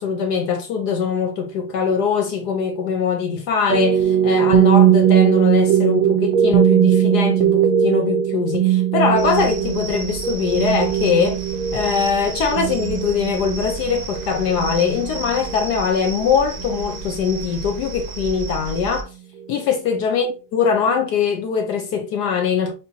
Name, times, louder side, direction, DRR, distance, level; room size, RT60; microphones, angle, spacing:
voice 1, 0.0-11.4 11.7-19.1 19.5-22.7, left 6 dB, 70° left, 1.0 m, -22 dB
sound 1, 3.7-17.1, right 10 dB, 80° right, 1.4 m, -19 dB
sound 2, 9.2-19.0, right 4 dB, 55° right, 1.1 m, -33 dB
6.7 x 2.8 x 2.7 m
omnidirectional pair, 2.1 m